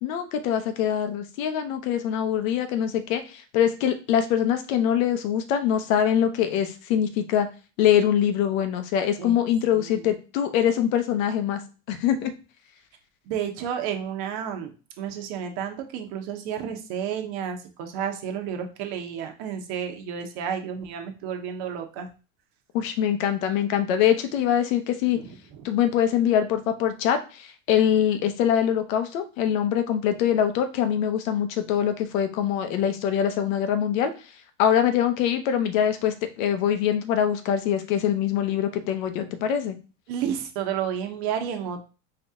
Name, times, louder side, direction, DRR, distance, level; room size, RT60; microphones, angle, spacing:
voice 1, 0.0-7.5 7.8-11.6 11.9-12.3 22.7-25.2 25.6-34.1 34.6-39.8, left 9 dB, 80° left, 8 dB, 0.9 m, -23 dB
voice 2, 9.7-10.1 13.3-22.1 25.1-25.6 40.1-41.8, right 8 dB, 65° right, 4 dB, 1.1 m, -31 dB
4.5 x 2.8 x 3.6 m, 0.34 s
hypercardioid pair, 90°, 40 cm